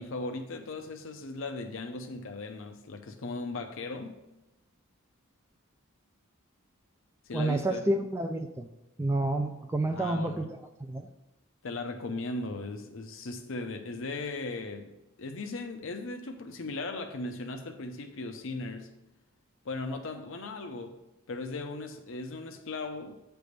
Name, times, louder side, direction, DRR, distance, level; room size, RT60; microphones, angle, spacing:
voice 1, 0.0-4.2 7.3-7.9 9.9-10.5 11.6-18.9 19.6-21.0 21.3-23.2, left 3 dB, 65° left, 0.7 m, -37 dB
voice 2, 7.3-8.7 9.0-10.5 10.8-11.1, right 2 dB, 10° right, 0.3 m, -29 dB
8.8 x 3.4 x 6.6 m
head